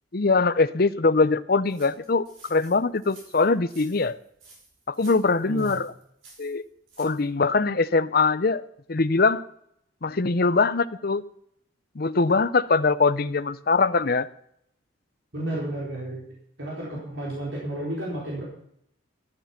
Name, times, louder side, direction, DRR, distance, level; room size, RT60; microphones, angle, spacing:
voice 1, 0.1-4.2 4.9-5.9 6.4-6.6 7.0-8.6 8.9-9.4 10.0-11.2 12.0-14.3, left 4 dB, 50° left, 14 dB, 0.7 m, -22 dB
sound 1, 1.6-7.3, right 3 dB, 85° right, 6.0 m, -52 dB
voice 2, 5.4-5.8 15.3-18.4, right 1 dB, 70° right, -4 dB, 4.4 m, -32 dB
14.0 x 12.0 x 5.9 m, 0.71 s
head